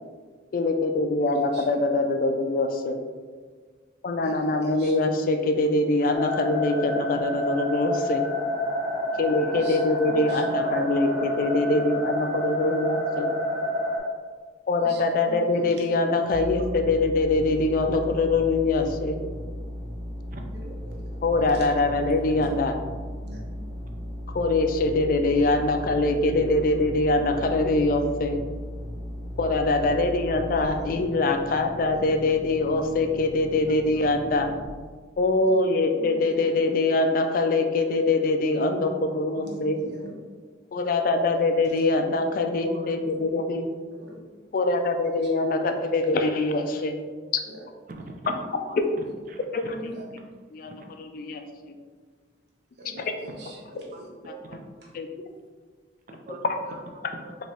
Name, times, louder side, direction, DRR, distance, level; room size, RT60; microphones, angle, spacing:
voice 1, 0.5-3.0 4.0-8.2 9.2-13.3 14.7-19.2 21.2-22.8 24.3-28.4 29.4-34.5 35.2-39.8 40.7-43.7 44.5-47.0 49.5-49.8 50.5-50.7 51.0-51.4 51.7-51.8 54.5-54.6 54.9-55.1 56.4-56.5, left 2 dB, 45° left, 6 dB, 0.3 m, -23 dB
voice 2, 4.2-4.9 9.5-9.8 10.1-10.4 14.8-15.9 20.5-21.2 21.5-21.7 22.3-22.5 23.2-23.4 30.6-30.9 31.9-32.2 36.0-36.4 39.3-40.1 43.0-43.2 44.0-44.2 47.4-47.6 49.0-49.1 49.7-50.0 52.8-54.1 54.8-54.9, right 1 dB, 65° right, -2 dB, 0.8 m, -43 dB
sound 1, 6.1-14.0, left 1 dB, 15° right, 1.2 m, -28 dB
sound 2, 16.3-34.7, equal, 80° right, 1.1 m, -37 dB
voice 3, 42.6-43.0 47.2-47.3 47.9-48.3 48.6-48.8 49.3-50.1 50.6-50.7 53.9-54.4 56.1-57.3, right 2 dB, 45° right, 3 dB, 0.4 m, -43 dB
4.5 x 3.0 x 2.9 m, 1.5 s
head